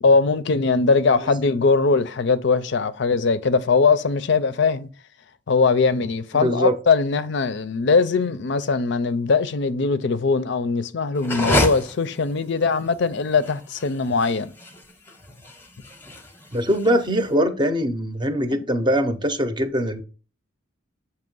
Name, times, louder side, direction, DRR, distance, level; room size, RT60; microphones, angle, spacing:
voice 1, 0.0-4.9 5.5-14.5, left 4 dB, 60° left, 0.5 m, -21 dB
voice 2, 6.3-6.8 16.5-20.0, equal, 25° right, 0.6 m, -22 dB
sound 1, 11.2-17.3, left 1 dB, 10° left, 0.7 m, -29 dB
7.7 x 2.9 x 5.3 m
head